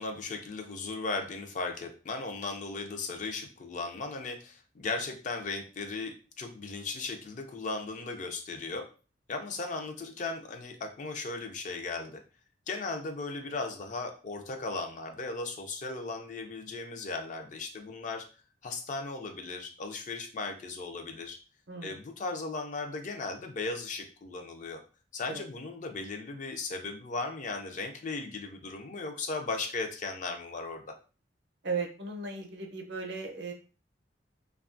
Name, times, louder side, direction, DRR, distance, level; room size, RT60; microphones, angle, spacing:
voice 1, 0.0-8.9 9.3-12.2 12.7-18.3 18.6-21.4 21.8-24.8 25.1-30.8, left 3 dB, 45° left, 4 dB, 0.4 m, -37 dB
voice 2, 31.6-33.5, right 4 dB, 65° right, 2 dB, 0.6 m, -36 dB
2.6 x 2.3 x 2.5 m, 0.36 s
head